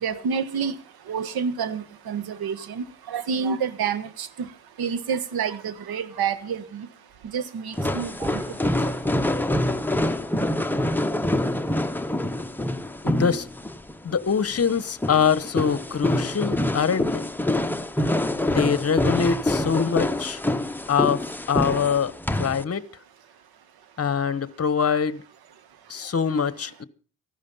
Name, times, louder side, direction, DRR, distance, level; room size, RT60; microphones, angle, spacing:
voice 1, 0.0-0.7 1.1-4.5 4.8-6.9 7.3-8.4, right 6 dB, 70° right, 1.5 m, -28 dB
sound 1, 7.7-22.6, left 1 dB, 5° left, 1.0 m, -26 dB
voice 2, 13.0-13.5 14.0-17.3 18.5-20.4 20.9-22.9 24.0-25.2 25.9-26.8, left 6 dB, 40° left, 1.1 m, -24 dB
15.5 x 12.0 x 5.6 m
supercardioid pair, 60°, 38 cm